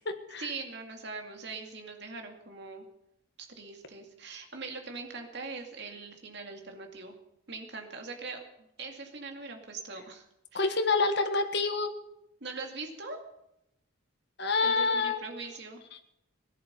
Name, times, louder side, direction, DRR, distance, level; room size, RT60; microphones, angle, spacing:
voice 1, 0.4-2.9 3.5-7.2 7.5-8.4 8.8-10.2 10.5-10.7 12.4-13.2 14.6-15.8, right 4 dB, 55° right, 3 dB, 2.3 m, -41 dB
voice 2, 10.5-11.9 14.4-15.2 15.9-16.0, left 3 dB, 55° left, 6 dB, 1.6 m, -27 dB
17.5 x 11.0 x 6.9 m, 0.83 s
head